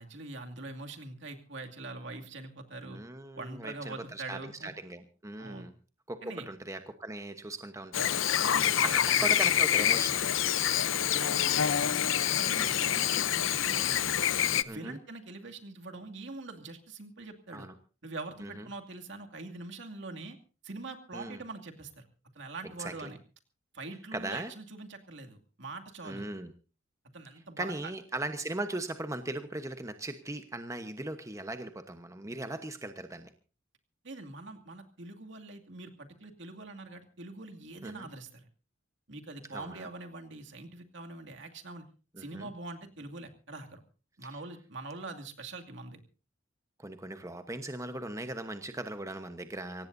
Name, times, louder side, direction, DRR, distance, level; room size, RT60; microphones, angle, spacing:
voice 1, 0.0-3.0 3.4-4.7 5.4-5.7 6.2-6.5 8.5-9.4 10.9-14.2 14.6-17.7 18.0-20.4 20.6-22.1 22.3-23.2 23.7-26.3 27.1-27.7 34.0-38.5 39.1-41.8 42.2-43.8 44.2-46.0, right 3 dB, 60° right, 4 dB, 2.5 m, -44 dB
voice 2, 2.8-5.7 6.1-8.3 8.6-8.9 9.2-10.3 12.5-12.8 14.7-15.0 17.5-17.7 18.4-18.6 21.1-21.4 22.8-23.1 24.1-24.5 26.0-26.5 27.6-33.3 37.8-38.1 39.5-39.9 42.1-42.5 44.3-44.4 46.8-49.9, right 2 dB, 15° right, 8 dB, 1.0 m, -39 dB
Chirp tweet / Buzz, 7.9-14.6, left 10 dB, 70° left, 0.7 m, -27 dB
24.5 x 18.0 x 2.7 m, 0.35 s
head